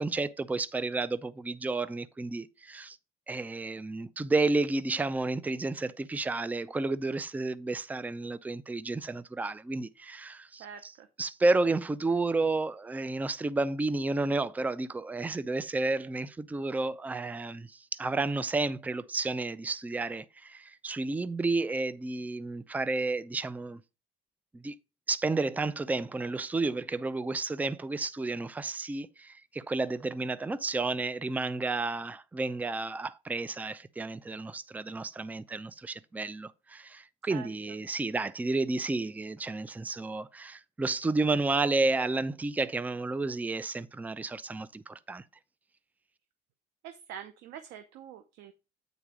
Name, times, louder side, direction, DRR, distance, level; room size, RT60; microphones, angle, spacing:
voice 1, 0.0-3.0 3.3-10.9 11.2-23.8 24.5-24.8 25.1-45.2, right 3 dB, 10° right, 0.4 m, -31 dB
voice 2, 10.6-11.1 37.3-37.5 46.8-48.5, right 9 dB, 85° right, 0.8 m, -45 dB
8.9 x 4.0 x 4.8 m
cardioid pair, 110°, 17 cm